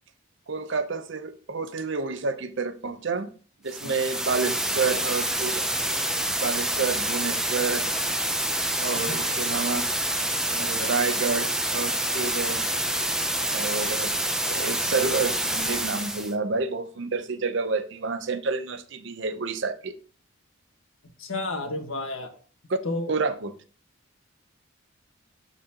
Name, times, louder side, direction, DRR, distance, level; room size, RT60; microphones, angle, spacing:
voice 1, 0.5-3.3 3.6-5.7 6.4-7.9 8.8-9.8 10.2-12.7 13.4-14.1 14.4-20.0 22.7-22.8 23.1-23.5, right 4 dB, 60° right, 0.7 m, -29 dB
sound 1, 3.7-16.3, right 1 dB, 5° right, 0.5 m, -27 dB
voice 2, 8.9-9.4 21.2-22.3 22.8-23.1, left 2 dB, 80° left, 1.5 m, -32 dB
12.0 x 4.1 x 2.9 m
head